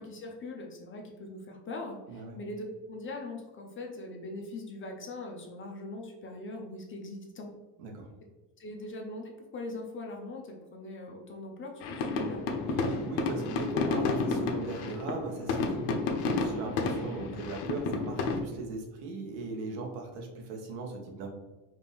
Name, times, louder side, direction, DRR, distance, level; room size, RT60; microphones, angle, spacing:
voice 1, 0.0-7.5 8.6-12.4, left 2 dB, 25° left, 1 dB, 0.5 m, -41 dB
voice 2, 7.8-8.1 12.7-21.3, right 3 dB, 80° right, 1 dB, 1.2 m, -39 dB
sound 1, 11.8-18.4, left 3 dB, 70° left, 0.8 m, -31 dB
5.0 x 2.5 x 3.4 m, 1.2 s
cardioid pair, 135°, 50 cm